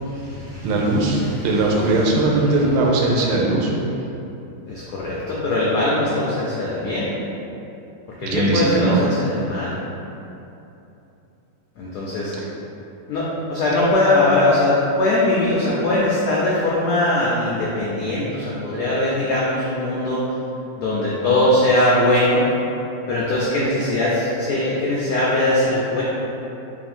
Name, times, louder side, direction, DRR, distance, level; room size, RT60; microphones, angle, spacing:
voice 1, 0.0-1.7 4.7-7.1 8.2-9.7 11.8-12.3 13.1-20.3 20.8-22.4 23.1-26.0, left 1 dB, 85° left, -6 dB, 0.8 m, -21 dB
voice 2, 0.6-3.7 8.3-9.0 12.4-12.5, right 2 dB, 85° right, -2 dB, 1.4 m, -19 dB
3.4 x 2.4 x 4.2 m, 2.9 s
omnidirectional pair, 2.3 m